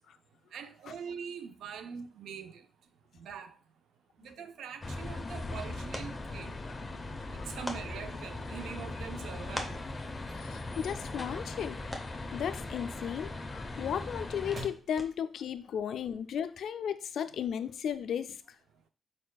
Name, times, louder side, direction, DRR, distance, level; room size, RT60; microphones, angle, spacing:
voice 1, 0.5-2.6 3.2-3.5 4.2-6.6 7.3-9.8, right 7 dB, 85° right, 0.4 m, -43 dB
sound 1, 4.7-15.5, equal, 5° right, 0.8 m, -48 dB
sound 2, 4.8-14.7, left 2 dB, 30° left, 0.7 m, -39 dB
sound 3, 9.5-16.6, right 2 dB, 50° right, 1.4 m, -55 dB
voice 2, 10.4-12.0 12.3-18.4, left 8 dB, 75° left, 0.4 m, -35 dB
4.7 x 4.4 x 2.3 m
cardioid pair, 80°, 0 cm